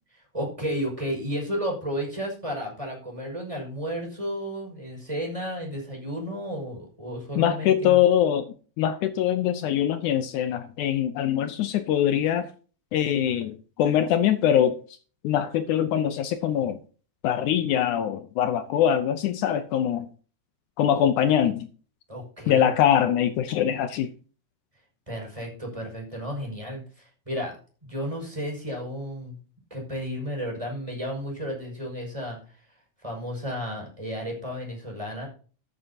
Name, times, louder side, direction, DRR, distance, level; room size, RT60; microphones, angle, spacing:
voice 1, 0.1-8.0 22.1-22.7 25.1-27.5 27.8-29.4 29.7-32.4 33.0-35.3, equal, 10° right, 5.5 m, -33 dB
voice 2, 7.3-8.5 8.8-12.5 12.9-14.8 15.2-16.8 17.2-20.1 20.8-21.7 22.5-24.1, left 10 dB, 85° left, 1.7 m, -23 dB
13.5 x 10.0 x 2.8 m
omnidirectional pair, 4.5 m